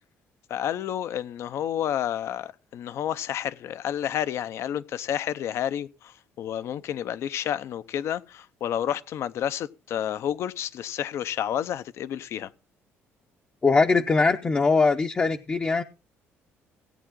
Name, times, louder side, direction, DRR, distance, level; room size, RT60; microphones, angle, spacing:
voice 1, 0.5-12.5, left 10 dB, 65° left, 0.7 m, -30 dB
voice 2, 13.6-15.8, left 4 dB, 25° left, 0.7 m, -21 dB
16.5 x 8.7 x 3.8 m
cardioid pair, 120°, 5 cm